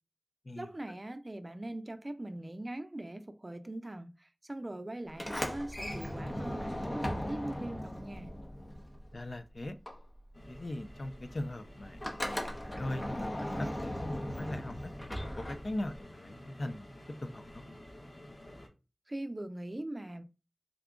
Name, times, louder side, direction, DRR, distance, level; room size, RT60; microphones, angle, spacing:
voice 1, 0.5-8.3 19.1-20.2, right 1 dB, 35° right, 0.4 m, -41 dB
Sliding door, 5.1-9.4 9.6-16.0, equal, 40° left, 0.8 m, -38 dB
voice 2, 9.1-9.8 10.5-14.9 15.4-16.9 17.3-17.4, left 1 dB, 65° left, 0.4 m, -40 dB
sound 1, 10.3-18.7, left 1 dB, 90° left, 1.1 m, -51 dB
3.7 x 2.3 x 3.6 m
wide cardioid pair, 60°, 0 cm